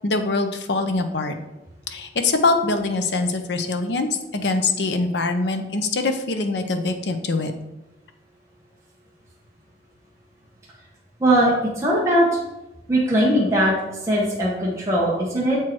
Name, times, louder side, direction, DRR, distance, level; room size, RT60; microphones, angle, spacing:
voice 1, 0.0-1.4 1.9-7.5, left 3 dB, 75° left, 7 dB, 0.8 m, -23 dB
voice 2, 11.2-12.3 12.9-13.7 14.0-15.6, right 1 dB, 15° right, -6 dB, 1.2 m, -20 dB
7.3 x 4.6 x 4.6 m, 0.95 s
head